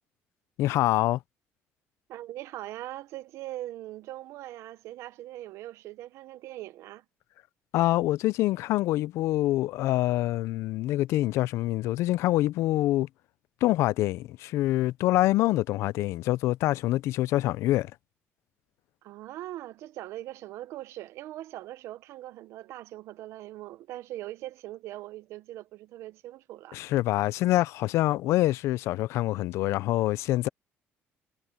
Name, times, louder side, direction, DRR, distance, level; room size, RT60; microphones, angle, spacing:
voice 1, 0.6-1.2 7.7-13.1 13.6-17.9 26.7-30.5, left 16 dB, 80° left, 0.4 m, -25 dB
voice 2, 2.1-7.0 19.0-26.8, right 15 dB, 80° right, 0.8 m, -41 dB
cardioid pair, 145°, 5 cm